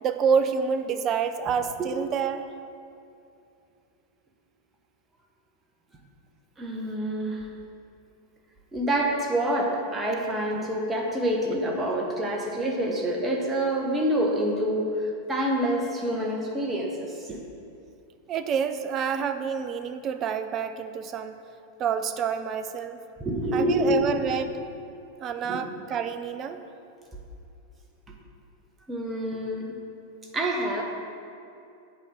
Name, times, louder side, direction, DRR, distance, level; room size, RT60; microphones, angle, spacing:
voice 1, 0.0-2.5 18.3-21.4 21.8-23.0 23.5-24.6 25.2-26.6, right 6 dB, 30° right, 9 dB, 0.4 m, -28 dB
voice 2, 6.6-7.5 8.7-17.4 23.2-24.0 25.4-25.6 28.9-29.7 30.3-30.8, right 1 dB, 15° right, -1 dB, 1.3 m, -27 dB
7.8 x 4.4 x 6.9 m, 2.6 s
figure-of-eight pair, 90°, 0 cm